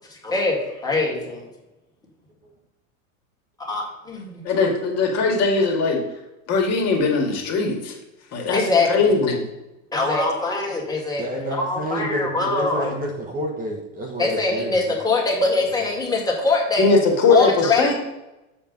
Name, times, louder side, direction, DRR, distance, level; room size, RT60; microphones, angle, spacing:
voice 1, 0.1-1.5 3.6-4.4 8.5-9.2 9.9-12.9 14.2-16.9 17.3-17.9, left 3 dB, 10° left, -2 dB, 2.0 m, -23 dB
voice 2, 4.4-6.0 6.5-7.9 8.3-8.6 8.9-9.4 16.8-17.9, left 4 dB, 40° left, 1 dB, 2.0 m, -20 dB
voice 3, 11.2-14.9, right 1 dB, 20° right, 0 dB, 1.1 m, -29 dB
7.2 x 4.4 x 5.3 m, 0.97 s
supercardioid pair, 120°, 41 cm